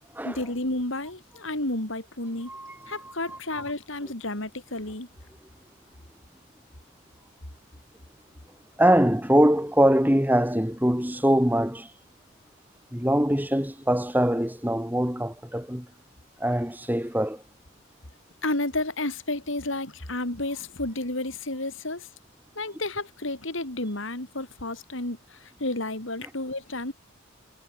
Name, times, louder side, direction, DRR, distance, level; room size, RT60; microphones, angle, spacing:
voice 1, 0.2-2.5 2.9-5.1 18.4-22.1 22.6-26.9, left 2 dB, 60° left, 3.5 m, -31 dB
voice 2, 2.5-3.6 8.8-11.9 12.9-15.9 16.4-17.4, equal, 10° right, 3.6 m, -23 dB
head